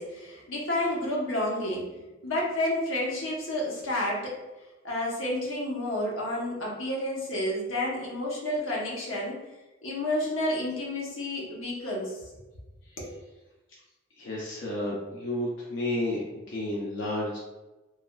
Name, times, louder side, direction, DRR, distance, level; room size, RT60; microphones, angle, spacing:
voice 1, 0.0-1.9 2.2-4.4 4.8-9.4 9.8-12.3 13.0-13.1, left 1 dB, 85° left, -3 dB, 0.8 m, -30 dB
voice 2, 14.2-17.4, left 1 dB, 65° left, -5 dB, 0.5 m, -31 dB
3.1 x 2.3 x 2.2 m, 1.1 s
head